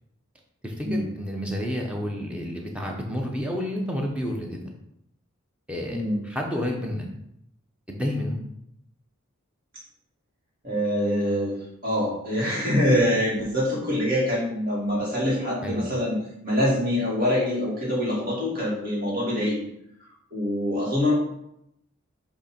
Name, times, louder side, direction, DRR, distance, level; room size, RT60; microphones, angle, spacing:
voice 1, 0.6-4.6 5.7-7.0 7.9-8.4 15.6-15.8, equal, 5° right, 0 dB, 0.8 m, -30 dB
voice 2, 10.6-11.6 11.8-16.2 16.4-19.6 20.3-21.1, left 1 dB, 40° right, -6 dB, 2.3 m, -24 dB
7.7 x 2.9 x 4.4 m, 0.78 s
head